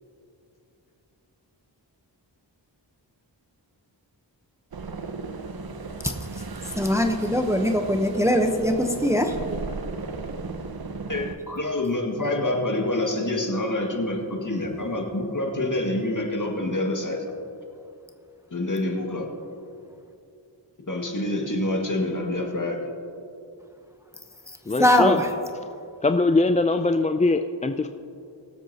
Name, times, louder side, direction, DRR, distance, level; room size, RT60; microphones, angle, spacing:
sound 1, 4.7-11.4, right 4 dB, 55° right, 0.8 m, -35 dB
voice 1, 6.0-9.4 24.5-25.3 25.6-25.8, left 1 dB, 5° right, 4 dB, 0.9 m, -22 dB
voice 2, 11.1-17.2 18.5-19.3 20.9-22.8, left 1 dB, 45° left, 1 dB, 2.0 m, -27 dB
voice 3, 24.7-25.2 26.0-27.9, left 3 dB, 15° left, 7 dB, 0.4 m, -22 dB
22.5 x 8.0 x 2.9 m, 2.6 s
cardioid pair, 45°, 45 cm